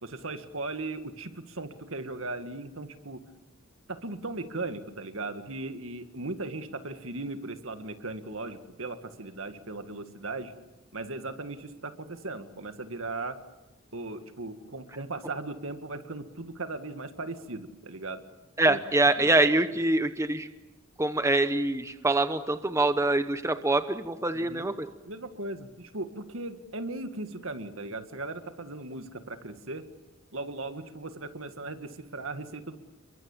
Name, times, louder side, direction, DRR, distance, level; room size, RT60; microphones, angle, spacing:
voice 1, 0.0-3.2 3.9-10.5 10.9-13.4 13.9-18.2 18.6-18.8 19.2-19.3 24.3-24.7 25.1-29.8 30.3-32.8, right 2 dB, 70° right, 8 dB, 2.0 m, -37 dB
voice 2, 18.6-20.5 21.0-24.9, right 2 dB, 15° right, 10 dB, 0.9 m, -25 dB
30.0 x 23.0 x 7.4 m, 1.0 s
head